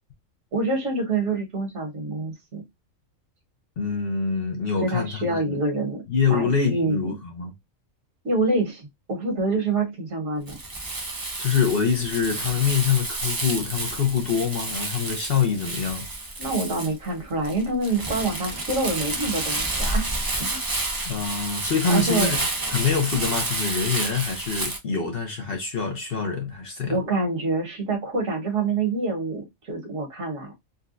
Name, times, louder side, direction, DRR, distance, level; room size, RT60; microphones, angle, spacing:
voice 1, 0.5-2.6 4.8-7.2 8.2-10.6 16.4-20.1 20.4-20.6 21.9-22.3 26.9-30.5, right 3 dB, 70° right, 1.6 m, -26 dB
voice 2, 3.8-5.6 6.1-7.5 11.4-16.1 21.0-22.4 22.7-27.0, left 6 dB, 55° left, 0.8 m, -25 dB
Crumpling crinkling, 10.5-24.8, right 2 dB, 35° right, 0.3 m, -30 dB
3.8 x 2.2 x 2.5 m
omnidirectional pair, 1.4 m